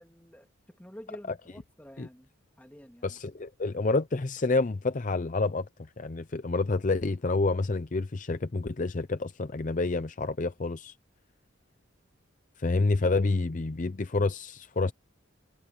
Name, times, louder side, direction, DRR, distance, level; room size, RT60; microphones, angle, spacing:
voice 1, 0.0-2.3 2.6-3.2, equal, 10° left, 2.2 m, -49 dB
voice 2, 3.0-5.7 6.0-10.9 12.6-14.9, left 3 dB, 40° left, 0.6 m, -28 dB
head